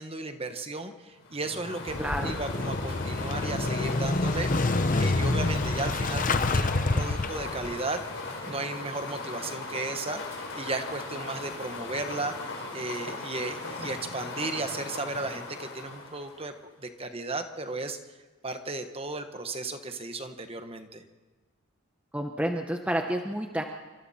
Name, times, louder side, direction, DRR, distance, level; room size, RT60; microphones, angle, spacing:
voice 1, 0.0-8.0 8.5-16.5 16.8-18.0 18.4-21.0, right 2 dB, 25° right, 7 dB, 1.2 m, -35 dB
sound 1, 1.2-16.6, left 3 dB, 55° left, 4.8 m, -38 dB
Motorcycle / Engine starting, 1.9-7.7, left 2 dB, 35° left, 0.8 m, -27 dB
voice 2, 2.0-2.3 22.1-23.6, right 1 dB, 5° right, 3 dB, 0.9 m, -29 dB
27.5 x 25.0 x 4.3 m, 1.3 s
head